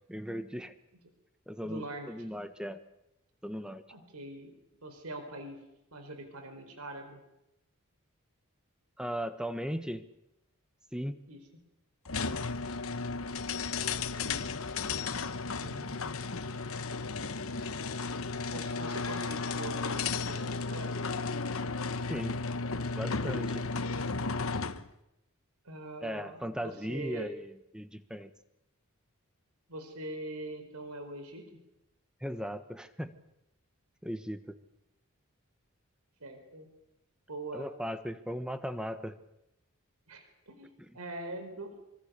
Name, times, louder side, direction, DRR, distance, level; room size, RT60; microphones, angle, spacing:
voice 1, 0.1-0.7 1.5-2.8 3.4-3.8 9.0-10.0 10.9-11.2 22.1-22.4 23.0-23.7 26.0-28.3 32.2-33.1 34.0-34.5 37.5-39.2 40.8-40.9, equal, 5° right, 10 dB, 1.3 m, -37 dB
voice 2, 1.6-2.1 3.9-4.5 4.8-5.6 5.9-7.2 11.3-11.4 13.8-14.6 15.6-16.1 18.5-21.0 25.6-27.3 29.7-31.5 36.2-36.7 37.3-37.7 40.1-41.7, right 2 dB, 90° right, 7 dB, 4.3 m, -43 dB
sound 1, 12.1-24.9, left 4 dB, 70° left, 1.3 m, -34 dB
26.0 x 25.0 x 6.8 m, 0.85 s
head